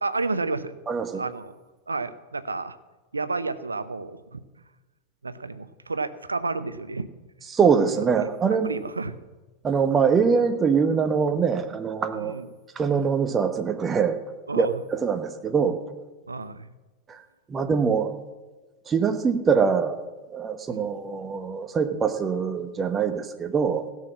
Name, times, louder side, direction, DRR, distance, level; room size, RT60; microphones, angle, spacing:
voice 1, 0.0-0.7 1.1-1.6 1.9-2.7 3.1-4.4 5.2-7.1 8.2-9.2 12.1-12.5 14.5-14.7 16.3-16.7 20.7-20.8, right 3 dB, 80° right, 14 dB, 0.7 m, -31 dB
voice 2, 0.9-1.2 7.5-8.8 9.6-12.3 12.7-14.2 14.5-15.8 17.1-17.2 17.5-18.1 18.9-20.0 20.3-23.9, right 6 dB, 20° right, 9 dB, 1.1 m, -23 dB
16.5 x 6.5 x 7.3 m, 1.2 s
figure-of-eight pair, 90°, 0 cm